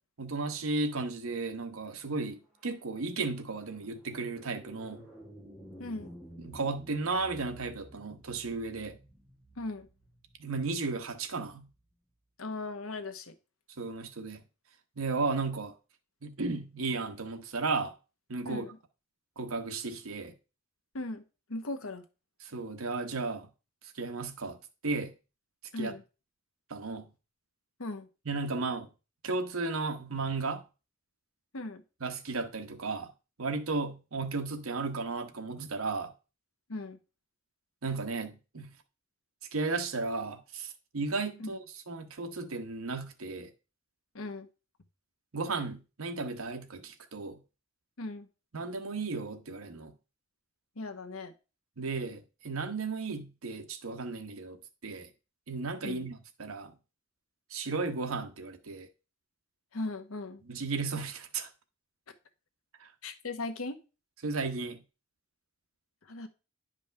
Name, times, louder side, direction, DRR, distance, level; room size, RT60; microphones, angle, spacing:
voice 1, 0.2-5.1 6.4-9.0 10.4-11.7 13.8-14.4 15.0-15.7 16.2-17.9 18.3-18.6 19.4-20.3 22.4-23.5 23.9-24.6 24.8-25.1 25.8-25.9 26.7-27.1 28.2-28.9 29.2-30.6 32.0-33.1 33.4-36.1 37.8-38.7 39.5-43.5 45.3-47.4 48.5-49.9 51.8-55.1 55.5-56.7 57.5-58.9 60.5-61.5 62.8-62.9 64.2-64.8, right 3 dB, 90° right, 1.1 m, -34 dB
sound 1, 2.4-11.7, right 1 dB, ahead, 3.5 m, -53 dB
voice 2, 5.8-6.1 9.6-9.9 12.4-13.3 18.5-18.7 20.9-21.2 21.5-22.0 25.7-26.0 27.8-28.1 31.5-31.8 36.7-37.0 41.4-41.5 44.1-44.5 48.0-48.3 50.8-51.3 55.8-56.1 59.7-60.4 63.0-63.8 66.1-66.3, left 2 dB, 90° left, 1.1 m, -38 dB
10.0 x 5.2 x 3.4 m
head